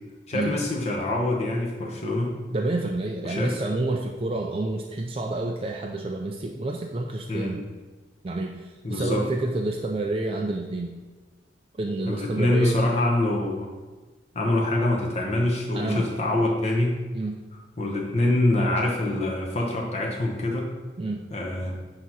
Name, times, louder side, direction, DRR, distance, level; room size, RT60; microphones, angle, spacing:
voice 1, 0.3-2.3 3.2-3.5 7.3-7.5 8.8-9.3 12.1-13.7 14.3-17.0 17.8-20.7 21.3-21.8, left 1 dB, 35° left, -2 dB, 0.9 m, -25 dB
voice 2, 2.5-7.6 8.2-8.6 8.9-10.9 11.8-12.8 15.7-16.1 17.1-17.4 21.0-21.2, right 2 dB, 30° right, 1 dB, 0.4 m, -29 dB
8.3 x 3.0 x 5.5 m, 1.3 s
head